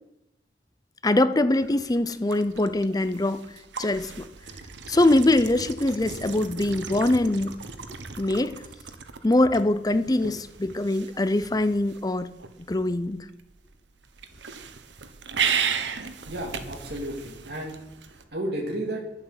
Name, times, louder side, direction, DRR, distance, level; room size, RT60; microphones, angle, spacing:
voice 1, 1.0-3.4 3.8-4.3 4.9-7.5 8.2-8.6 9.2-12.3 12.7-13.2, left 1 dB, 20° left, 13 dB, 0.6 m, -23 dB
sound 1, 1.5-18.2, right 6 dB, 90° right, 1.2 m, -36 dB
voice 2, 16.3-17.8 18.3-19.0, right 1 dB, 65° right, -1 dB, 2.7 m, -32 dB
11.0 x 7.9 x 7.6 m, 0.86 s
head